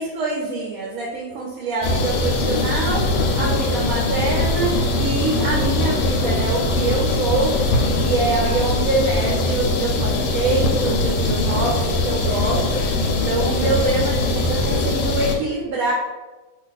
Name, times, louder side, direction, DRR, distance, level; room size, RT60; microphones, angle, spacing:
voice 1, 0.0-15.9, right 3 dB, 65° right, -2 dB, 0.9 m, -25 dB
sound 1, 1.8-15.4, left 2 dB, 85° left, 1.2 m, -21 dB
2.7 x 2.5 x 3.9 m, 1.2 s
omnidirectional pair, 1.8 m